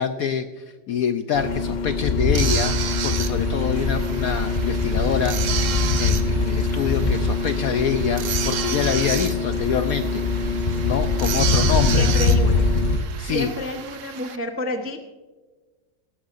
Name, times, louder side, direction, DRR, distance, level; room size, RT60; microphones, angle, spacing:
voice 1, 0.0-2.8 3.0-5.4 6.0-10.2 10.8-12.1 13.2-13.5, left 8 dB, 70° left, 8 dB, 0.8 m, -25 dB
sound 1, 1.3-13.0, left 3 dB, 50° left, 0.5 m, -22 dB
sound 2, 2.3-14.4, right 8 dB, 60° right, 0.9 m, -32 dB
voice 2, 11.6-12.6 13.2-15.0, equal, 15° right, 4 dB, 0.4 m, -29 dB
17.5 x 14.5 x 2.6 m, 1.3 s
omnidirectional pair, 2.0 m